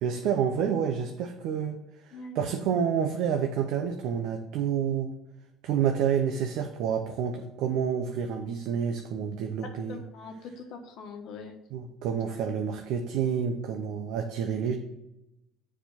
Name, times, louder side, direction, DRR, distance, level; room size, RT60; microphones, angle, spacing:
voice 1, 0.0-1.8 2.3-5.1 5.6-10.0 11.7-14.7, right 7 dB, 75° right, 4 dB, 0.8 m, -28 dB
voice 2, 2.1-2.4 9.6-11.6, left 4 dB, 65° left, 4 dB, 1.3 m, -42 dB
6.8 x 4.9 x 5.8 m, 0.88 s
supercardioid pair, 100°, 0 cm